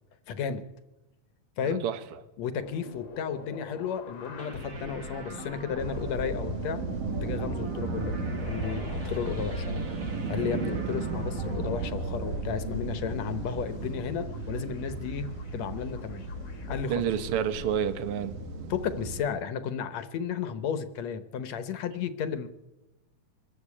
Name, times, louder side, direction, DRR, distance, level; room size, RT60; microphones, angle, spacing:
voice 1, 0.3-0.6 1.6-1.8 2.4-6.8 7.1-9.8 10.3-15.3 15.5-16.2 16.7-17.0 18.7-22.5, left 7 dB, 65° left, 12 dB, 2.1 m, -33 dB
voice 2, 1.6-2.0 16.9-18.4, right 9 dB, 55° right, 11 dB, 1.8 m, -29 dB
sound 1, 2.6-17.8, left 4 dB, 50° left, 1.8 m, -42 dB
sound 2, 4.4-13.7, right 3 dB, 35° right, 1.5 m, -45 dB
sound 3, 5.8-19.2, right 4 dB, 90° right, 3.0 m, -35 dB
23.0 x 13.5 x 8.5 m, 1.0 s
omnidirectional pair, 3.5 m